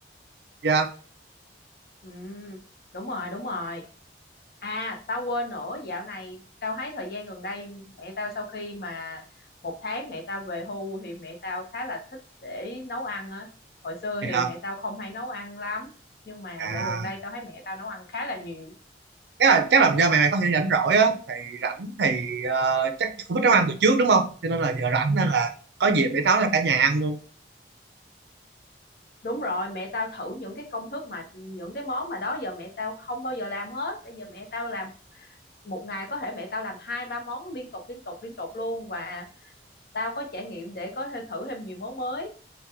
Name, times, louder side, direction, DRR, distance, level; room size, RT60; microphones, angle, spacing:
voice 1, 2.0-2.6 2.9-3.8 4.6-9.2 9.6-12.0 12.4-13.5 13.8-15.9 16.3-18.7 29.2-35.4 35.6-39.5 39.9-42.3, left 2 dB, 55° left, 2 dB, 0.7 m, -34 dB
voice 2, 16.6-17.1 19.4-25.5 25.8-27.2, right 4 dB, 70° right, 7 dB, 0.5 m, -22 dB
2.9 x 2.2 x 3.4 m, 0.39 s
head